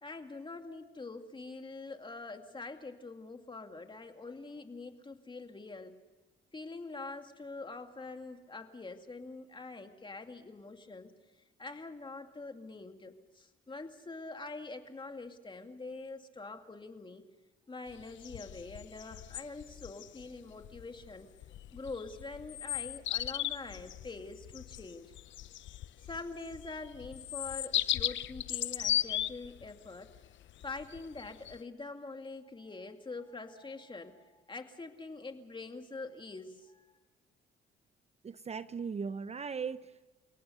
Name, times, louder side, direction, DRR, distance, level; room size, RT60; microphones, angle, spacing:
voice 1, 0.0-6.0 6.5-11.1 11.6-17.2 17.7-21.3 21.7-25.1 26.0-30.1 30.6-36.9, left 3 dB, 25° left, 5 dB, 2.5 m, -45 dB
sound 1, 17.9-31.6, left 12 dB, 70° left, 0.7 m, -37 dB
voice 2, 38.2-40.1, right 5 dB, 30° right, 13 dB, 0.7 m, -38 dB
30.0 x 18.0 x 6.9 m, 1.2 s
cardioid pair, 90°, 20 cm